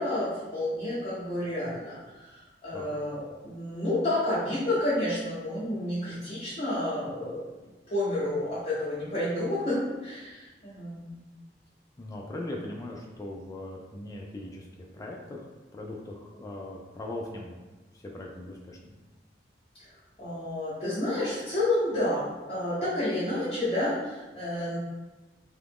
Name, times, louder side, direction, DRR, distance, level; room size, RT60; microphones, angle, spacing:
voice 1, 0.0-7.4 7.9-11.2 20.2-24.8, left 1 dB, 35° left, -10 dB, 0.9 m, -30 dB
voice 2, 12.0-14.7 14.9-15.5 15.7-17.6 17.9-19.0, left 1 dB, 20° left, -1 dB, 0.3 m, -39 dB
2.9 x 2.4 x 3.4 m, 1.1 s
head